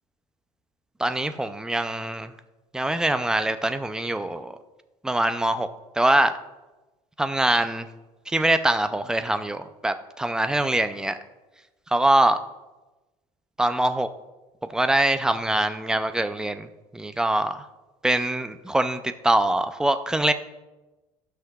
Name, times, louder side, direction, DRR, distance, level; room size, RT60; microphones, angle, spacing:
voice 1, 1.0-2.3 2.7-4.6 5.0-5.7 6.0-6.3 7.2-7.9 8.3-11.2 11.9-12.4 13.6-14.1 14.7-16.7 16.9-17.6 18.0-20.3, right 1 dB, 5° right, 9 dB, 0.3 m, -23 dB
15.5 x 5.8 x 2.3 m, 1.1 s
cardioid pair, 160°, 12 cm